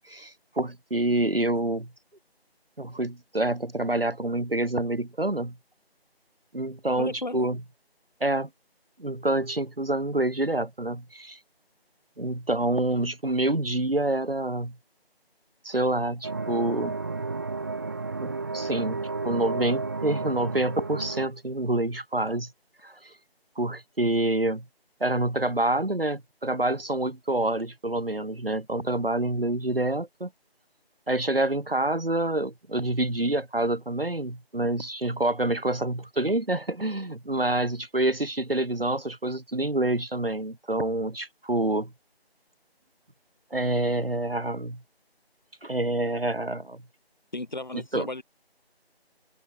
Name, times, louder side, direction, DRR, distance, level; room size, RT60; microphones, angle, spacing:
voice 1, 0.1-1.9 2.8-5.6 6.5-7.6 8.2-8.5 9.0-11.4 12.2-14.8 15.6-17.0 18.2-22.5 22.8-23.1 23.6-24.6 25.0-30.3 31.1-41.9 43.5-44.8 45.6-46.8 47.7-48.1, right 1 dB, 65° right, 3.3 m, -27 dB
voice 2, 7.0-7.5 47.3-48.2, left 2 dB, 45° left, 6.8 m, -34 dB
sound 1, 16.2-21.3, right 3 dB, 20° right, 3.7 m, -32 dB
open air
figure-of-eight pair, 170°, 31 cm